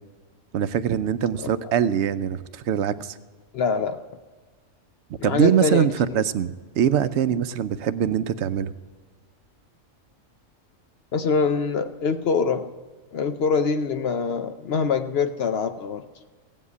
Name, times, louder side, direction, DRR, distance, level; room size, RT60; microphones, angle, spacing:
voice 1, 0.5-3.2 5.2-8.7, right 9 dB, 65° right, 13 dB, 0.8 m, -23 dB
voice 2, 3.5-4.0 5.2-5.9 11.1-12.7 13.1-16.0, left 5 dB, 60° left, 9 dB, 0.7 m, -24 dB
16.0 x 7.6 x 8.2 m, 1.4 s
omnidirectional pair, 1.4 m